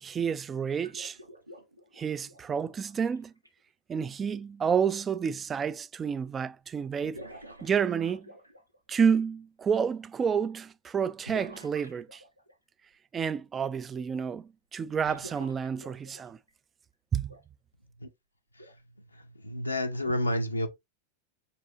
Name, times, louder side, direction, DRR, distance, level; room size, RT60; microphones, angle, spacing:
voice 1, 0.0-1.2 2.0-3.3 3.9-7.2 7.6-8.3 8.9-12.2 13.1-16.4 17.1-17.3, right 7 dB, 20° right, 0.3 m, -29 dB
sound 1, 0.8-3.5 5.4-5.5 7.0-8.8 11.3-12.6 15.0-16.5 17.3-17.4 18.6-18.8 20.1-20.2, equal, 85° right, 0.8 m, -48 dB
voice 2, 19.4-20.7, left 1 dB, 85° left, 0.7 m, -29 dB
5.7 x 3.3 x 2.8 m
figure-of-eight pair, 90°, 0 cm